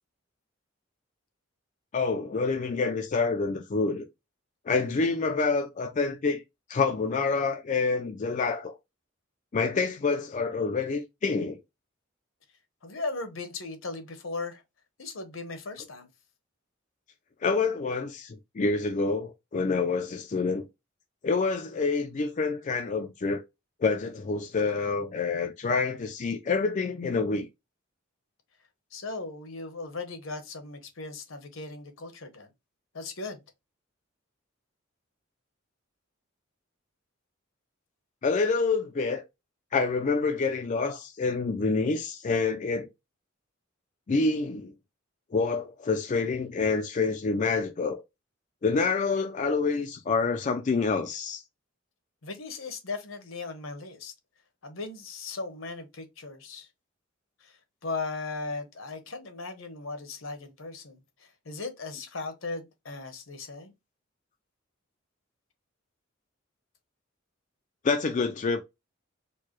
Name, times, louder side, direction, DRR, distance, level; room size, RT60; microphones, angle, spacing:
voice 1, 1.9-4.0 4.7-6.4 6.7-8.8 9.5-11.6 17.4-20.7 21.2-23.4 23.8-27.5 38.2-39.2 39.7-42.9 44.1-44.7 45.3-48.0 48.6-51.4 67.8-68.6, left 4 dB, 35° left, 0.4 m, -27 dB
voice 2, 12.8-14.6 15.0-16.1 28.9-32.5 32.9-33.4 52.2-54.1 54.6-56.7 57.4-57.5 57.8-63.7, left 3 dB, 80° left, 1.0 m, -37 dB
4.5 x 2.2 x 3.0 m
head